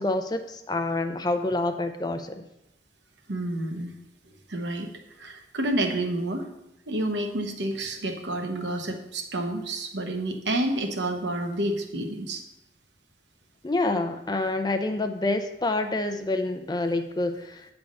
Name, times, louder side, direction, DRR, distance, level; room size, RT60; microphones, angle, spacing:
voice 1, 0.0-2.3 13.6-17.7, left 2 dB, 25° left, 7 dB, 0.4 m, -27 dB
voice 2, 3.3-3.9 4.5-4.9 5.2-6.5 6.9-12.4, right 1 dB, 80° right, 4 dB, 1.0 m, -29 dB
9.3 x 3.5 x 5.2 m, 0.86 s
head